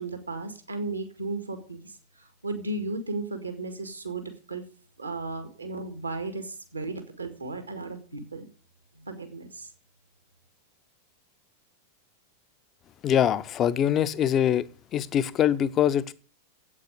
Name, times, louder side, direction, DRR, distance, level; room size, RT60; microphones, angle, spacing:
voice 1, 0.0-4.6 5.0-8.5 9.0-9.7, right 3 dB, 80° right, 1.9 m, -35 dB
voice 2, 13.0-14.6 14.9-16.1, left 10 dB, 30° left, 0.7 m, -23 dB
8.5 x 8.3 x 8.4 m
figure-of-eight pair, 90°, 0 cm